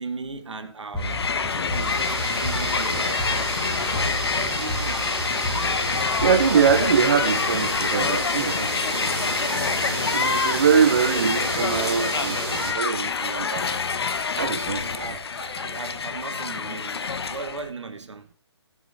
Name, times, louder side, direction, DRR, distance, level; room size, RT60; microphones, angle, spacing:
voice 1, 0.0-2.0 2.3-4.0 4.3-5.1 10.7-10.9 14.8-18.3, right 4 dB, 90° right, 1.1 m, -37 dB
sound 1, 0.9-7.6, right 1 dB, ahead, 1.6 m, -34 dB
Crowd, 1.0-17.7, left 5 dB, 60° left, 0.7 m, -27 dB
sound 2, 1.7-12.7, right 3 dB, 55° right, 2.2 m, -31 dB
voice 2, 6.0-9.6 10.1-13.8 14.4-15.2, right 6 dB, 35° right, 0.5 m, -23 dB
11.5 x 7.2 x 2.6 m
hypercardioid pair, 170°, 15 cm